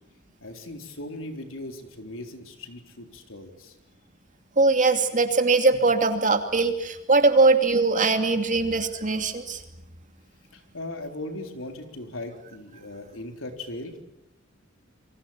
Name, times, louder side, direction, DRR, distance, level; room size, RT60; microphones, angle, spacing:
voice 1, 0.4-3.7 10.5-14.0, left 1 dB, 75° left, 5 dB, 4.0 m, -38 dB
voice 2, 4.6-9.6, right 3 dB, 40° right, 6 dB, 2.7 m, -21 dB
29.0 x 24.0 x 7.3 m, 0.88 s
head